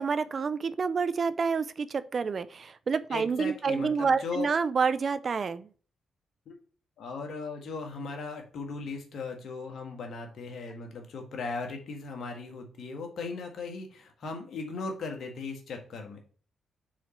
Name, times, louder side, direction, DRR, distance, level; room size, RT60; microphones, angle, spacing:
voice 1, 0.0-5.7, right 5 dB, 50° right, 15 dB, 0.4 m, -28 dB
voice 2, 3.1-4.5 6.5-6.6 7.0-16.2, left 4 dB, 70° left, 3 dB, 1.5 m, -38 dB
4.9 x 4.2 x 5.2 m, 0.42 s
supercardioid pair, 60°, 0 cm